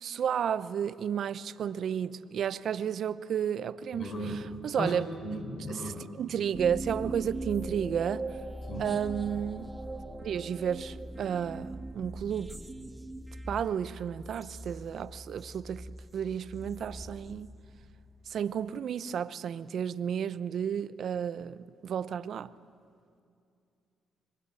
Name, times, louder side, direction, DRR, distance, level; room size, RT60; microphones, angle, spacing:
voice 1, 0.0-5.1 5.7-8.3 8.8-9.7 10.2-12.5 13.5-15.9 16.1-17.5 18.3-22.5, right 8 dB, 60° right, 0.8 m, -32 dB
voice 2, 3.9-4.4 4.8-6.0 8.7-8.9, equal, 50° left, 4.8 m, -36 dB
sound 1, 6.5-18.1, right 1 dB, 15° right, 1.6 m, -41 dB
26.5 x 22.5 x 8.5 m
cardioid pair, 90°, 0 cm